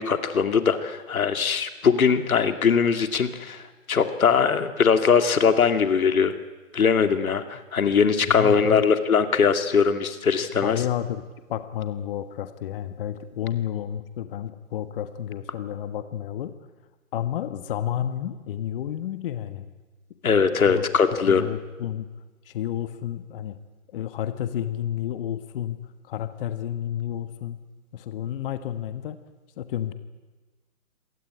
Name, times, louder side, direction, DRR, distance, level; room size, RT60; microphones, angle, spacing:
voice 1, 0.0-3.6 3.9-6.3 6.7-10.8 20.2-21.5, left 6 dB, 90° left, 8 dB, 2.5 m, -21 dB
voice 2, 8.2-8.8 10.6-16.5 17.1-19.7 20.7-20.8 21.1-22.1 22.5-23.6 23.9-27.6 27.9-29.2 29.6-29.9, left 11 dB, 40° left, 10 dB, 1.4 m, -31 dB
26.5 x 18.0 x 9.9 m, 1.3 s
hypercardioid pair, 150°, 41 cm